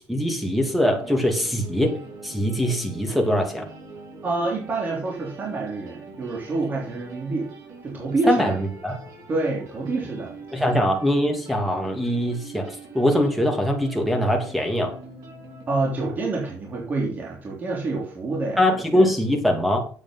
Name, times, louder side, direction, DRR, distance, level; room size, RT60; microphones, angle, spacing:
voice 1, 0.1-3.6 8.3-9.0 10.5-14.9 18.6-19.8, equal, ahead, 3 dB, 2.6 m, -22 dB
sound 1, 0.7-15.8, right 3 dB, 65° right, 5.0 m, -43 dB
voice 2, 4.2-7.5 7.8-8.5 9.3-10.6 15.7-19.1, right 3 dB, 30° right, -1 dB, 3.5 m, -27 dB
8.5 x 8.4 x 5.7 m, 0.42 s
cardioid pair, 135°, 6 cm